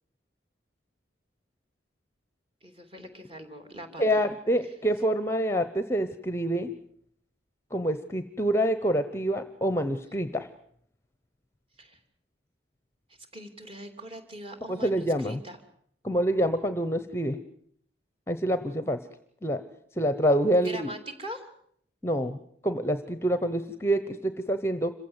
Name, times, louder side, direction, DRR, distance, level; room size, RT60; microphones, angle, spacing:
voice 1, 2.6-4.3 11.8-12.0 13.3-15.6 20.5-21.5, right 1 dB, 30° right, 5 dB, 2.9 m, -41 dB
voice 2, 4.0-6.7 7.7-10.5 14.7-15.4 16.0-17.4 18.3-19.0 19.4-19.6 20.0-20.9 22.0-24.9, equal, 15° left, 11 dB, 0.8 m, -26 dB
26.5 x 15.5 x 8.0 m, 0.66 s
head